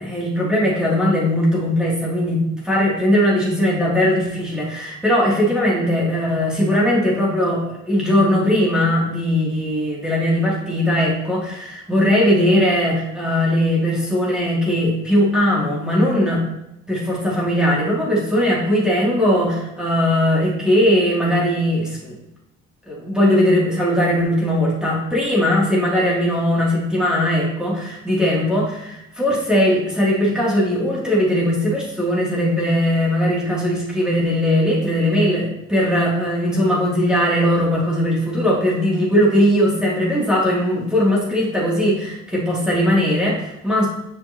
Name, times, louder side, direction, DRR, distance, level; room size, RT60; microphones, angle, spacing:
voice 1, 0.0-16.4 16.9-22.2 22.9-43.9, equal, 5° right, -6 dB, 2.9 m, -19 dB
8.2 x 6.1 x 3.0 m, 0.85 s
cardioid pair, 90°, 30 cm